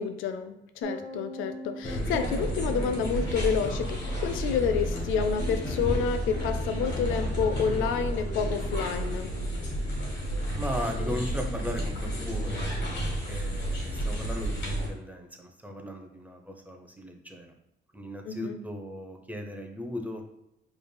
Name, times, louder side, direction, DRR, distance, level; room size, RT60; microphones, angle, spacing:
voice 1, 0.0-9.3 18.2-18.6, left 6 dB, 85° left, 8 dB, 0.4 m, -29 dB
Bass guitar, 0.8-7.1, right 1 dB, 40° left, 0.8 m, -45 dB
sound 1, 1.8-14.9, equal, 60° left, 1.5 m, -31 dB
voice 2, 10.6-13.0 13.3-17.5 17.9-20.2, equal, 10° right, 3 dB, 0.6 m, -37 dB
5.0 x 3.2 x 2.2 m, 0.86 s
cardioid pair, 90°, 20 cm